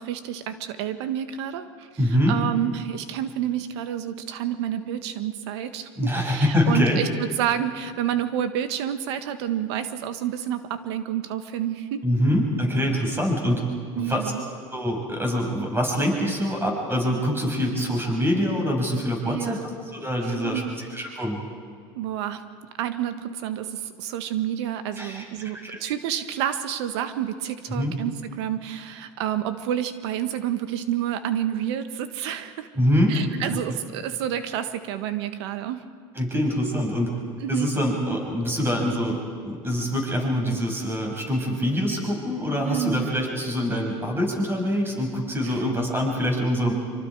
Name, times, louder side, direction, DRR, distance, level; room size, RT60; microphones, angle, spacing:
voice 1, 0.0-12.0 13.9-14.4 19.2-19.7 20.2-20.7 21.9-22.4 22.8-32.7 33.1-35.8 37.4-37.7 42.6-43.1 45.4-45.7, right 10 dB, 85° right, 10 dB, 1.5 m, -29 dB
voice 2, 2.0-2.4 6.0-7.0 12.0-13.6 14.0-14.3 14.7-19.6 19.9-21.4 25.0-25.8 27.7-27.9 32.7-33.1 33.5-33.6 36.1-37.1 37.5-39.2 39.4-46.7, equal, 15° right, 1 dB, 6.2 m, -24 dB
26.5 x 25.0 x 4.8 m, 2.1 s
supercardioid pair, 100°, 14 cm